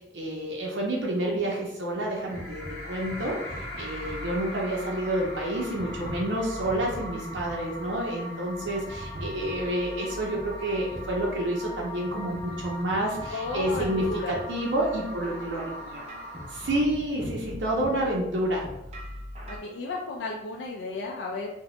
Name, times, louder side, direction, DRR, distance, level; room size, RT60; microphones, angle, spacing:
voice 1, 0.1-2.6 2.9-3.4 3.8-16.0 16.5-18.7, right 1 dB, 85° right, -2 dB, 0.5 m, -29 dB
sound 1, 2.1-19.6, equal, 35° right, 0.5 m, -42 dB
sound 2, 2.3-16.8, left 1 dB, 10° left, 0.7 m, -41 dB
voice 2, 13.3-14.4 19.5-21.6, left 3 dB, 75° left, -1 dB, 0.3 m, -33 dB
2.8 x 2.1 x 3.0 m, 0.89 s
head